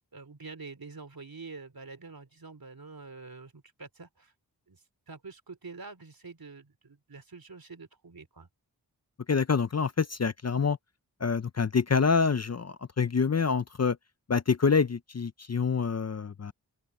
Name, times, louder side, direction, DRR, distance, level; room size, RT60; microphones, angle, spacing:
voice 1, 0.1-4.3 4.7-8.5, right 4 dB, 65° right, 3.2 m, -46 dB
voice 2, 9.3-10.8 11.2-14.0 14.3-16.5, left 5 dB, 40° left, 0.6 m, -26 dB
open air
wide cardioid pair, 45°, 39 cm